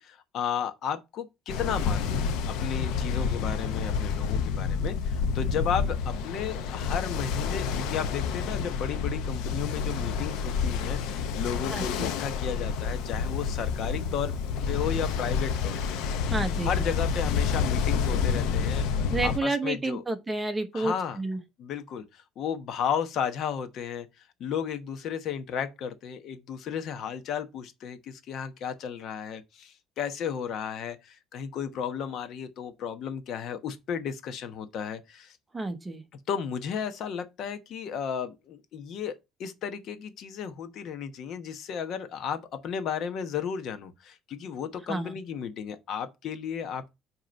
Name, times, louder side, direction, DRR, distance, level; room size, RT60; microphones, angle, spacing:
voice 1, 0.0-14.3 14.7-16.0 16.6-20.0 20.7-21.2 21.6-24.1 24.4-35.4 36.3-39.1 39.4-46.9, left 7 dB, 55° left, 0.9 m, -34 dB
Ocean, 1.5-19.4, left 6 dB, 90° left, 0.8 m, -29 dB
voice 2, 11.7-12.1 16.3-16.9 19.1-21.4 35.5-36.0 44.9-45.2, right 2 dB, 15° right, 0.9 m, -30 dB
7.6 x 3.0 x 5.2 m
cardioid pair, 145°, 0 cm